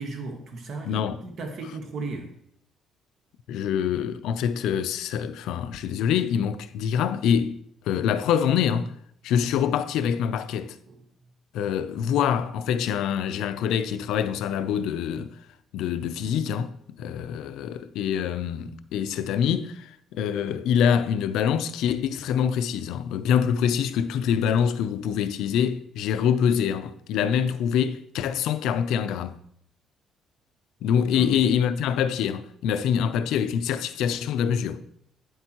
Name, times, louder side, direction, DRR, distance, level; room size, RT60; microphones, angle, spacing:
voice 1, 0.0-2.3 10.9-11.0 31.1-31.4, right 3 dB, 50° right, 1.4 m, -36 dB
voice 2, 0.8-1.2 3.5-7.6 7.9-8.9 9.2-10.8 11.5-15.4 15.7-29.3 30.8-34.8, left 8 dB, 85° left, 0.5 m, -25 dB
9.3 x 8.0 x 3.0 m
cardioid pair, 140°, 0 cm